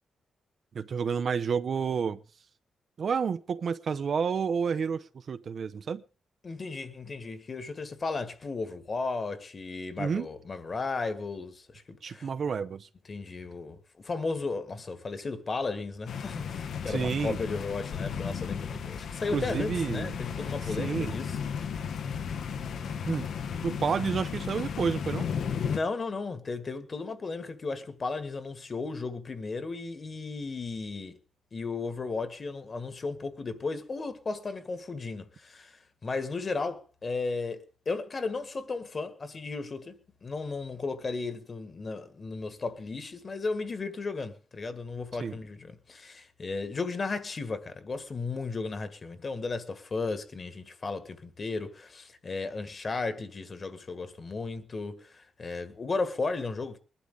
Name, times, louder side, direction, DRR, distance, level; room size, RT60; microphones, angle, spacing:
voice 1, 0.7-2.2 3.0-6.0 10.0-10.3 12.0-12.9 16.9-17.4 19.3-20.1 20.8-21.1 23.1-23.3 23.6-25.3 45.2-45.3, right 6 dB, 50° right, 0.7 m, -30 dB
voice 2, 6.4-12.3 13.1-21.4 25.7-31.2 31.5-40.0 40.2-56.8, left 3 dB, 35° left, 1.8 m, -35 dB
sound 1, 16.1-25.8, left 7 dB, 70° left, 1.3 m, -34 dB
21.5 x 11.5 x 3.8 m
wide cardioid pair, 135°, 0 cm